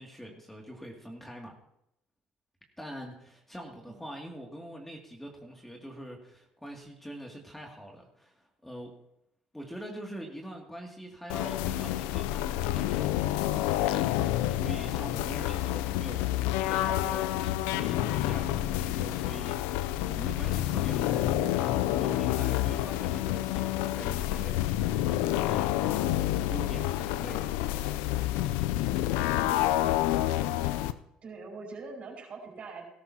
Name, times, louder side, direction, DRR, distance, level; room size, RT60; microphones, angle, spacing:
voice 1, 0.0-1.5 2.8-8.9 9.5-27.6 28.3-28.5, equal, 5° left, 0 dB, 2.5 m, -44 dB
sound 1, 11.3-30.9, left 14 dB, 80° left, 0.5 m, -28 dB
voice 2, 31.2-32.8, right 4 dB, 50° right, 0 dB, 5.7 m, -43 dB
17.5 x 13.0 x 2.9 m, 0.81 s
supercardioid pair, 70°, 3 cm